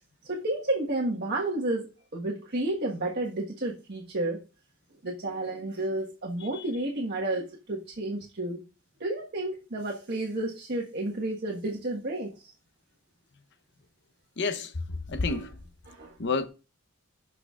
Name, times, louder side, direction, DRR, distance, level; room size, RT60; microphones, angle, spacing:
voice 1, 0.2-4.4 5.0-8.6 9.0-12.5 15.3-15.5 15.8-16.2, right 2 dB, 55° right, 1.5 m, -31 dB
voice 2, 14.4-14.7 15.1-15.5 16.2-16.5, left 4 dB, 60° left, 0.9 m, -28 dB
18.0 x 6.0 x 2.5 m
head